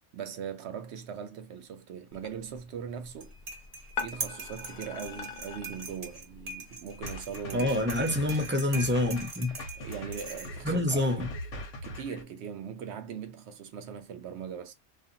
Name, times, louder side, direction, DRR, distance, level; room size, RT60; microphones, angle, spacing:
voice 1, 0.1-3.4 4.0-7.7 8.1-8.3 9.5-11.1 11.8-14.7, right 7 dB, 70° right, 0.8 m, -40 dB
sound 1, 2.1-7.3, left 6 dB, 55° left, 0.6 m, -43 dB
sound 2, 3.1-10.8, right 3 dB, 35° right, 0.8 m, -42 dB
sound 3, 7.0-12.2, left 1 dB, 85° left, 1.2 m, -41 dB
voice 2, 7.5-9.6 10.6-11.3, left 1 dB, 15° right, 0.3 m, -27 dB
2.5 x 2.5 x 2.6 m
omnidirectional pair, 1.3 m